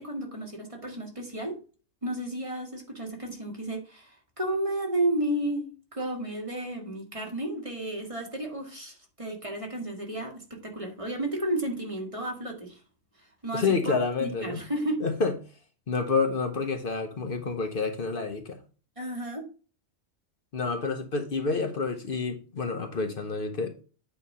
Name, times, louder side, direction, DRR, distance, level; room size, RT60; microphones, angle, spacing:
voice 1, 0.0-1.6 2.0-12.8 13.4-13.9 14.2-15.0 19.0-19.5, right 1 dB, 30° right, 1.8 m, -32 dB
voice 2, 13.5-14.6 15.0-15.3 15.9-18.6 20.5-23.7, left 4 dB, 55° left, 1.0 m, -28 dB
8.7 x 3.3 x 5.5 m
omnidirectional pair, 1.1 m